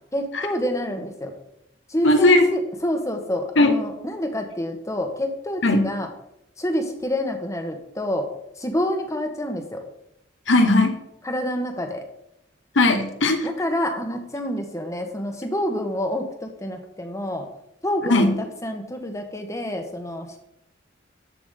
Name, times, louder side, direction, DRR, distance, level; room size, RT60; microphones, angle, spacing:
voice 1, 0.1-1.3 1.9-6.1 6.6-8.3 8.6-9.8 11.2-12.0 13.4-17.5 17.8-20.4, left 1 dB, 15° left, 5 dB, 1.1 m, -28 dB
voice 2, 2.0-2.5 3.6-3.8 5.6-5.9 10.5-10.9 12.7-13.5 18.1-18.3, left 2 dB, 85° left, 6 dB, 1.2 m, -17 dB
13.0 x 4.8 x 3.7 m, 0.79 s
head